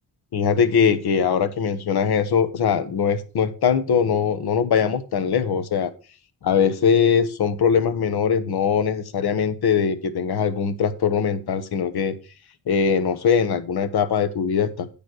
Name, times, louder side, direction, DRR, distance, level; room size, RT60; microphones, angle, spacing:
voice 1, 0.3-5.9 6.4-12.2 12.7-14.9, left 7 dB, 70° left, 12 dB, 1.1 m, -21 dB
9.1 x 5.2 x 6.2 m, 0.36 s
cardioid pair, 90°, 40 cm